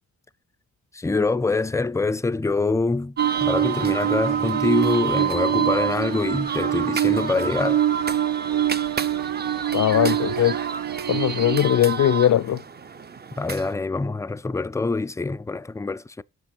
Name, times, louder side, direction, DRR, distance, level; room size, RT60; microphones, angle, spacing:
voice 1, 0.9-7.8 13.4-16.2, left 3 dB, 10° left, 0.4 m, -25 dB
sound 1, 3.2-13.7, right 6 dB, 25° right, 0.6 m, -30 dB
sound 2, 3.2-11.6, right 12 dB, 65° right, 0.6 m, -25 dB
voice 2, 9.7-10.6 11.1-12.6, left 11 dB, 50° left, 0.6 m, -20 dB
7.5 x 6.3 x 5.2 m
supercardioid pair, 55°, 36 cm